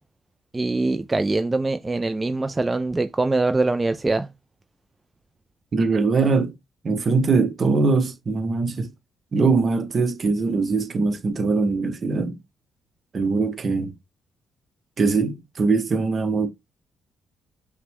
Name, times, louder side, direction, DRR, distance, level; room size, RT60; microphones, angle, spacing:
voice 1, 0.5-4.3, right 2 dB, 20° right, 0.3 m, -23 dB
voice 2, 5.7-6.5 6.8-8.9 9.3-12.4 13.1-13.9 15.0-16.5, right 4 dB, 45° right, 0.8 m, -22 dB
5.6 x 2.1 x 3.5 m
cardioid pair, 90°, 0 cm